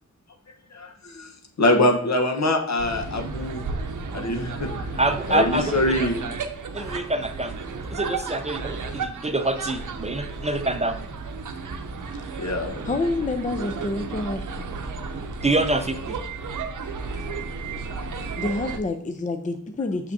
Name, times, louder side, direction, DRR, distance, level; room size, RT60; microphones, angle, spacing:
voice 1, 0.7-1.3 1.6-3.6 4.1-4.7 5.3-6.2 12.4-12.9 17.9-18.0, left 1 dB, 65° left, 4 dB, 1.1 m, -24 dB
sound 1, 2.8-18.8, right 4 dB, 90° right, 0.7 m, -33 dB
voice 2, 5.0-5.9 6.7-7.5 7.9-11.0 15.4-16.2, right 2 dB, 20° right, 8 dB, 0.5 m, -26 dB
voice 3, 12.8-14.7 18.4-20.1, left 2 dB, 25° left, 7 dB, 0.5 m, -28 dB
6.5 x 5.9 x 2.7 m, 0.64 s
wide cardioid pair, 80°, 30 cm